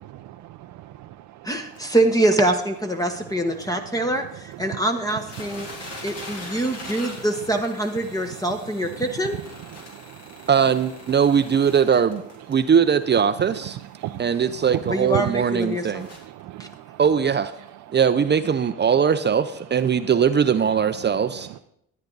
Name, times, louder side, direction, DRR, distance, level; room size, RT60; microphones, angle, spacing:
voice 1, 1.4-5.7 6.0-9.4 14.9-16.0, right 1 dB, 10° left, 5 dB, 1.1 m, -24 dB
sound 1, 1.7-1.8 2.3-2.4 2.7-2.8 3.1-3.2 3.6-3.7 4.5-4.6 4.9-16.4 17.1-17.2 17.7-17.8, left 2 dB, 55° left, 3.4 m, -42 dB
voice 2, 6.7-7.4 8.6-9.8 10.6-10.7 13.3-15.7 16.0-16.7 17.1-17.2, right 14 dB, 90° right, 6 dB, 0.6 m, -36 dB
voice 3, 10.5-12.2 12.5-13.8 14.2-16.1 17.0-17.5 17.9-21.6, right 7 dB, 35° right, 11 dB, 0.6 m, -20 dB
13.0 x 9.6 x 4.0 m, 0.72 s
cardioid pair, 90°, 30 cm